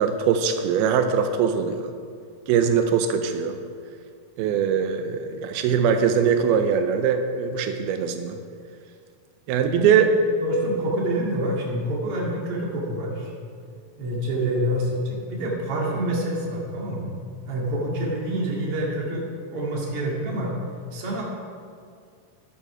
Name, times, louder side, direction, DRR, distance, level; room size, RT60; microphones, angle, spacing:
voice 1, 0.0-1.9 2.5-3.6 4.4-8.4 9.5-10.1, right 7 dB, 85° right, 7 dB, 2.6 m, -22 dB
voice 2, 10.4-13.3 14.0-17.1 17.5-20.5 20.9-21.2, right 1 dB, 45° right, -3 dB, 2.7 m, -27 dB
12.0 x 11.5 x 4.9 m, 2.2 s
omnidirectional pair, 4.3 m